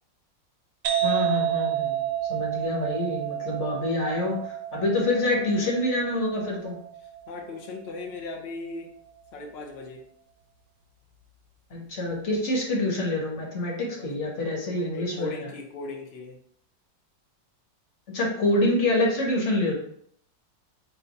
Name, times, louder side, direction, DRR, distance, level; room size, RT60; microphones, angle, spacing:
sound 1, 0.8-8.3, right 11 dB, 70° right, 1.3 m, -30 dB
voice 1, 1.0-6.8 11.7-15.5 18.1-19.7, left 1 dB, 45° left, -2 dB, 1.3 m, -26 dB
voice 2, 7.3-8.9 9.3-10.0 14.0-14.1 14.7-16.4, left 3 dB, 85° left, 0 dB, 0.5 m, -38 dB
4.1 x 2.7 x 4.0 m, 0.66 s
omnidirectional pair, 2.0 m